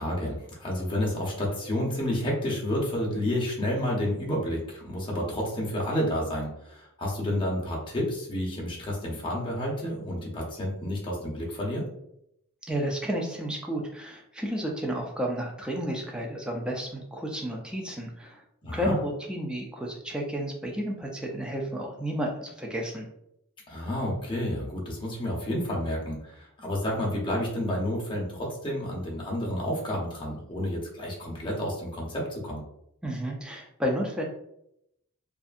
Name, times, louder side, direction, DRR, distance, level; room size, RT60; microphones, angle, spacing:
voice 1, 0.0-11.9 18.6-18.9 23.7-32.6, left 1 dB, 25° left, -3 dB, 0.7 m, -30 dB
voice 2, 12.7-18.4 18.7-23.1 33.0-34.2, equal, 5° right, -1 dB, 0.4 m, -32 dB
2.6 x 2.3 x 2.4 m, 0.78 s
head